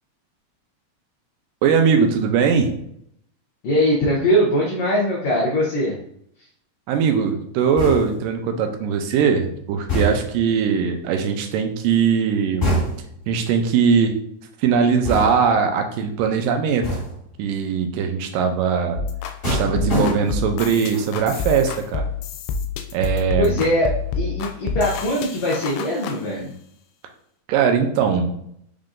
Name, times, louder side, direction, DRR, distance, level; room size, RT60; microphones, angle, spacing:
voice 1, 1.6-2.7 6.9-12.7 13.3-14.1 14.6-16.9 17.4-19.0 19.4-22.1 22.9-23.6 27.5-28.3, right 6 dB, 85° right, 5 dB, 2.2 m, -20 dB
voice 2, 3.6-5.9 23.4-26.5, equal, 70° left, -4 dB, 1.7 m, -21 dB
sound 1, 7.8-8.3 9.9-10.5 12.6-13.2 15.0-15.6 16.8-17.3 19.4-20.6 20.9-21.3, equal, 30° left, 1.5 m, -25 dB
sound 2, 19.0-26.2, left 5 dB, 85° left, 2.2 m, -28 dB
5.5 x 3.6 x 2.6 m, 0.71 s
omnidirectional pair, 3.9 m